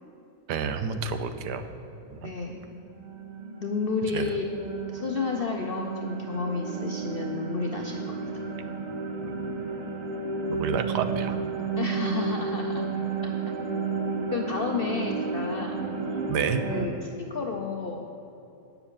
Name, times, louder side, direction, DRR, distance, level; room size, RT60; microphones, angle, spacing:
voice 1, 0.5-1.6 2.1-2.3 4.1-4.3 9.2-9.5 10.5-11.3 16.3-16.6, right 7 dB, 80° right, 9 dB, 1.3 m, -29 dB
voice 2, 2.2-2.6 3.6-4.5 4.9-8.3 11.8-12.8 13.2-13.3 14.3-15.8 16.7-18.1, left 4 dB, 75° left, 2 dB, 0.5 m, -31 dB
sound 1, 2.4-16.9, right 4 dB, 45° right, 0.5 m, -32 dB
9.3 x 6.9 x 7.1 m, 2.8 s
omnidirectional pair, 1.8 m